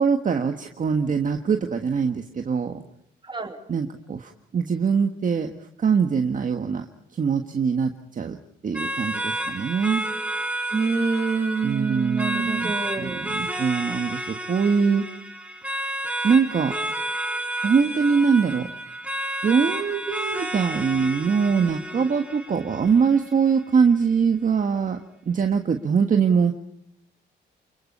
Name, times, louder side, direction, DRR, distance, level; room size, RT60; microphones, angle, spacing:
voice 1, 0.0-2.8 3.7-6.9 7.1-8.4 8.6-10.0 11.6-15.0 16.2-16.7 17.6-18.7 19.4-25.0 25.2-26.5, right 6 dB, 40° right, 5 dB, 1.6 m, -23 dB
voice 2, 3.2-3.6 10.7-13.3, right 4 dB, 25° right, 5 dB, 3.1 m, -27 dB
sound 1, 8.7-23.7, right 1 dB, 5° right, 3.3 m, -31 dB
28.5 x 22.0 x 5.5 m, 0.78 s
cardioid pair, 90°, 20 cm